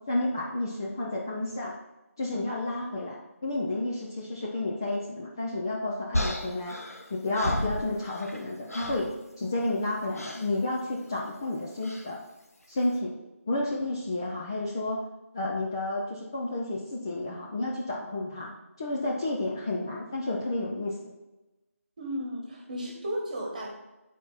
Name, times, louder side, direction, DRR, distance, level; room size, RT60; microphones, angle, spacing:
voice 1, 0.1-1.7 2.2-6.8 7.1-9.1 9.4-12.2 12.7-13.1 13.5-15.0 15.3-18.5 18.8-20.9, left 2 dB, 15° left, -4 dB, 0.4 m, -31 dB
sound 1, 6.1-8.4 8.7-9.1 10.1-10.5 11.8-12.1, left 1 dB, 85° left, 1.1 m, -33 dB
voice 2, 22.0-23.7, equal, 30° right, 0 dB, 1.3 m, -34 dB
8.1 x 4.3 x 4.1 m, 1.0 s
figure-of-eight pair, 165°, 8 cm